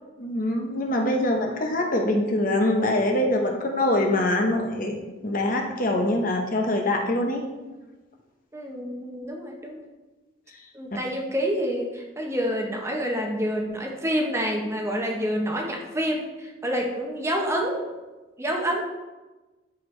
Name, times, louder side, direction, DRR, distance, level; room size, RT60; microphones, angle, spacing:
voice 1, 0.2-7.4, left 1 dB, 45° left, 2 dB, 0.9 m, -24 dB
voice 2, 8.5-9.8 10.7-17.9 18.4-18.8, equal, 15° right, 0 dB, 0.9 m, -28 dB
12.5 x 4.6 x 3.2 m, 1.2 s
head